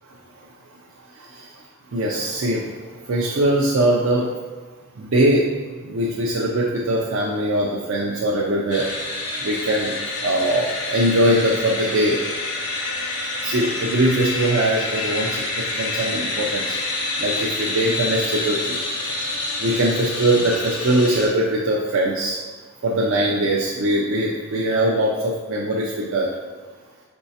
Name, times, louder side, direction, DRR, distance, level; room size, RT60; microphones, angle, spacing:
voice 1, 1.2-1.5 1.9-2.7 3.0-4.3 5.0-5.5 5.8-8.9 9.4-9.9 10.2-12.2 13.4-16.8 17.2-18.8 19.6-22.4 22.8-26.3, right 1 dB, 60° right, -3 dB, 0.5 m, -21 dB
sound 1, 8.7-21.3, left 2 dB, 85° left, 0.9 m, -27 dB
4.5 x 3.9 x 2.8 m, 1.4 s
head